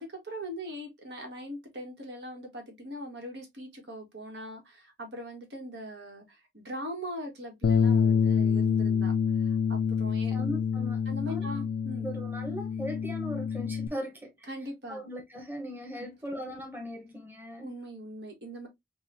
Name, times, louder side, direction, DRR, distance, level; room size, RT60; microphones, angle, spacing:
voice 1, 0.0-9.1 9.4-10.4 11.1-12.0 14.5-15.0 17.6-18.7, equal, 80° right, 1.5 m, -41 dB
Bass guitar, 7.6-13.9, left 6 dB, 75° left, 0.3 m, -27 dB
voice 2, 10.3-11.0 11.3-11.5 12.0-14.5 14.9-17.7, equal, 10° right, 0.9 m, -39 dB
5.3 x 2.4 x 2.6 m
head